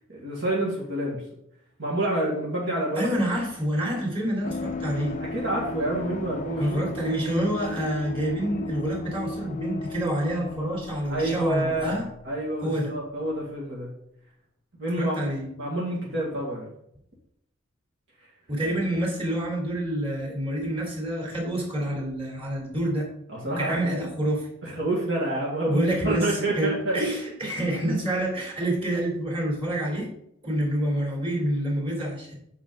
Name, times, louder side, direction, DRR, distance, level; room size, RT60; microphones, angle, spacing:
voice 1, 0.1-1.2 1.8-3.2 4.8-6.9 11.1-12.0 12.2-13.9 14.8-15.2 15.6-16.7 23.3-24.0 24.6-27.0, right 1 dB, 60° right, -4 dB, 1.9 m, -28 dB
voice 2, 2.9-5.2 6.6-12.0 12.6-12.9 15.0-15.5 18.5-23.1 23.6-24.5 25.6-30.1 30.4-32.4, right 1 dB, 30° right, -2 dB, 3.1 m, -27 dB
sound 1, 4.4-13.0 13.2-13.3, left 2 dB, 40° left, 0.4 m, -36 dB
8.5 x 6.1 x 3.8 m, 0.75 s
head